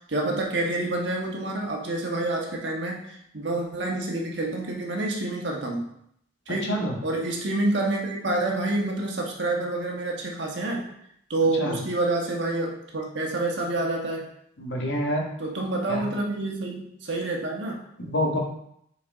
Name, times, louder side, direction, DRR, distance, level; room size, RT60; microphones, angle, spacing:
voice 1, 0.1-5.9 6.5-10.9 11.3-14.3 15.4-17.8, right 2 dB, 75° right, 0 dB, 1.3 m, -28 dB
voice 2, 14.6-15.3 15.9-16.0 18.0-18.4, equal, 80° left, 0 dB, 1.4 m, -26 dB
6.7 x 4.7 x 3.6 m, 0.74 s
head